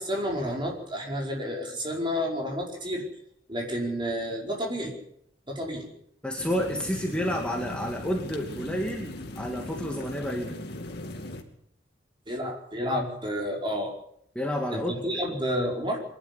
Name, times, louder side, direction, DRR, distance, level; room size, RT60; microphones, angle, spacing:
voice 1, 0.0-3.0 3.5-4.9 5.5-5.9 12.3-13.9 14.7-16.0, equal, 25° right, 0 dB, 5.0 m, -30 dB
voice 2, 6.2-10.6 14.4-15.2, equal, 5° left, 0 dB, 2.2 m, -30 dB
sound 1, 6.4-11.4, left 1 dB, 55° left, 2.7 m, -39 dB
23.5 x 11.5 x 9.8 m, 0.72 s
head